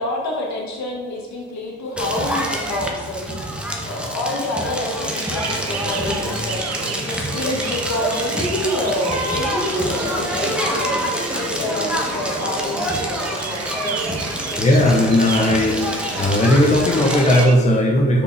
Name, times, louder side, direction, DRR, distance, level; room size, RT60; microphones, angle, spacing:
voice 1, 0.0-3.4 3.8-6.7 7.0-11.1 11.3-14.0, left 1 dB, 65° left, -1 dB, 1.8 m, -27 dB
Crackle, 2.0-17.4, equal, 5° right, 1.1 m, -26 dB
sound 1, 5.1-17.5, right 7 dB, 55° right, 0.8 m, -33 dB
voice 2, 14.6-15.9 16.2-18.2, left 1 dB, 25° left, 0 dB, 0.9 m, -16 dB
6.0 x 4.9 x 4.8 m, 1.4 s
cardioid pair, 90°, 30 cm